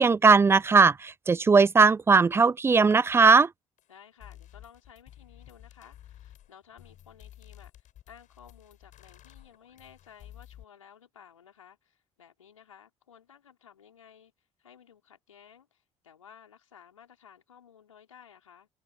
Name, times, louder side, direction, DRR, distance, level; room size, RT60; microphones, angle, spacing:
voice 1, 0.0-3.5, right 4 dB, 15° right, 0.3 m, -19 dB
sound 1, 3.8-3.9 4.2-10.6, left 11 dB, 50° left, 6.3 m, -52 dB
voice 2, 3.9-18.7, left 8 dB, 80° left, 4.4 m, -55 dB
figure-of-eight pair, 50°, 16 cm